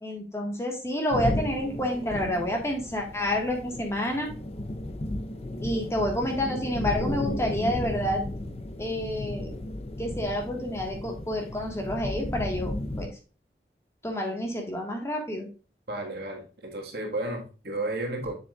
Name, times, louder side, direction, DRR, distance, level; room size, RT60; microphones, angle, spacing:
voice 1, 0.0-4.3 5.6-8.2 8.8-9.6 10.0-13.1 14.0-15.5, left 1 dB, 15° left, 1 dB, 1.6 m, -29 dB
sound 1, 1.1-13.1, left 1 dB, 35° left, 0.7 m, -34 dB
voice 2, 15.9-18.3, right 2 dB, 60° right, 1 dB, 1.7 m, -33 dB
7.1 x 7.0 x 2.4 m, 0.35 s
head